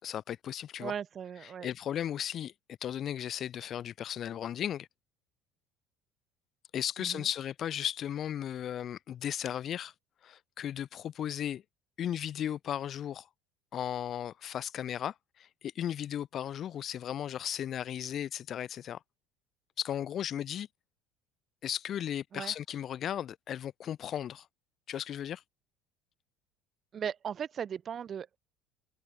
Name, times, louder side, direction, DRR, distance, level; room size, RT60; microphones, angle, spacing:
voice 1, 0.0-0.9 1.4-4.9 6.7-9.9 10.2-11.6 12.0-13.3 13.7-19.0 19.8-20.7 21.6-24.5 24.9-25.4, left 10 dB, 45° left, 4.5 m, -36 dB
voice 2, 0.8-1.7 7.0-7.3 22.3-22.5 26.9-28.4, right 8 dB, 40° right, 1.6 m, -37 dB
figure-of-eight pair, 60°, 0 cm